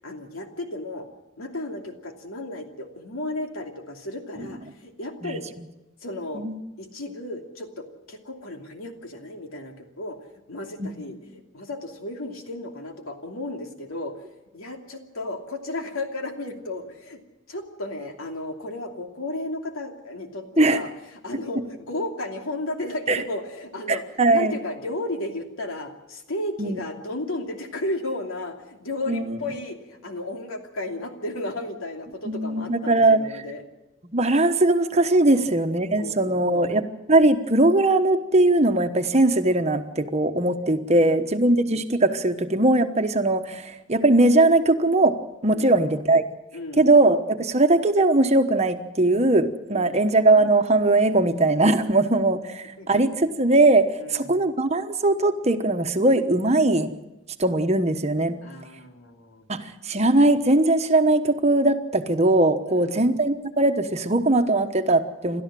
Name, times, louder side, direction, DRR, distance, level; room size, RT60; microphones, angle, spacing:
voice 1, 0.0-1.1 1.4-5.4 6.0-6.4 6.8-10.2 10.5-14.2 14.5-17.2 17.5-24.0 24.3-33.6 35.3-35.5 36.0-36.7 40.9-41.2 45.5-45.8 46.5-46.9 49.7-50.1 52.8-52.9 54.0-54.5 58.4-59.4 62.7-63.2, left 1 dB, 90° left, 3 dB, 2.8 m, -34 dB
voice 2, 23.9-24.5 26.6-26.8 29.1-29.4 32.2-33.2 34.1-36.8 37.1-45.2 45.4-46.2 46.8-56.9 57.4-58.4 59.5-65.4, right 2 dB, 30° right, 7 dB, 1.1 m, -20 dB
29.0 x 13.0 x 7.6 m, 1.0 s
head